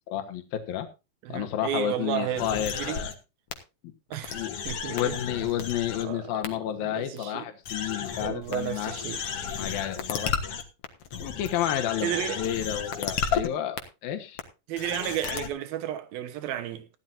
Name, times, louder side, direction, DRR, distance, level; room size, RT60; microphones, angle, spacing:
voice 1, 0.1-0.9 1.3-3.1 4.3-8.9 9.6-10.3 11.2-12.1 12.4-14.4, left 11 dB, 80° left, 3.2 m, -31 dB
voice 2, 1.2-3.1 4.1-5.2 6.0-7.5 8.2-9.2 12.0-12.4 14.7-16.9, right 11 dB, 85° right, 3.1 m, -33 dB
sound 1, 2.4-3.1 3.5-3.6 4.1-6.0 6.4-6.5 7.2-7.3 7.7-13.5 13.8-13.9 14.4-14.5 14.8-15.5, left 7 dB, 55° left, 2.0 m, -33 dB
16.0 x 12.0 x 2.7 m
omnidirectional pair, 4.1 m